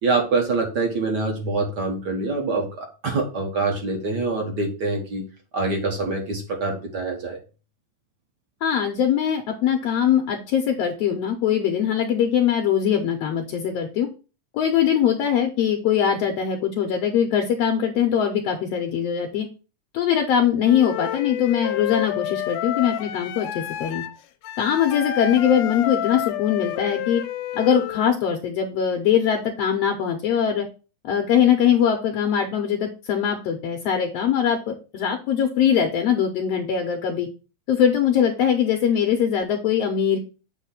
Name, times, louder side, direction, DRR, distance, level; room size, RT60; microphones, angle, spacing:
voice 1, 0.0-5.3 5.5-7.4, right 3 dB, 50° right, 2 dB, 1.3 m, -25 dB
voice 2, 8.6-14.1 14.5-19.5 19.9-24.0 24.6-27.2 27.5-30.7 31.0-37.3 37.7-40.2, left 8 dB, 70° left, 4 dB, 1.6 m, -22 dB
Wind instrument woodwind instrument, 20.6-28.1, left 11 dB, 85° left, 2.1 m, -30 dB
8.2 x 3.1 x 5.8 m, 0.33 s
omnidirectional pair, 3.6 m